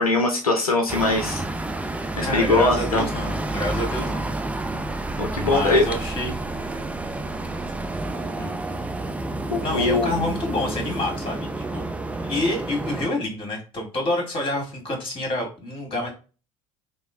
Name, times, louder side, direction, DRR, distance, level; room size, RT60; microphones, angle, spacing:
voice 1, 0.0-1.4 2.2-3.1 5.2-5.8 9.5-10.1, left 2 dB, 90° left, 1 dB, 0.6 m, -21 dB
sound 1, 0.9-13.1, right 2 dB, 5° right, 0.3 m, -30 dB
voice 2, 2.2-4.3 5.4-6.4 8.4-8.5 9.6-16.1, left 1 dB, 30° left, 1 dB, 1.7 m, -28 dB
3.0 x 2.7 x 2.3 m, 0.34 s
figure-of-eight pair, 65°, 18 cm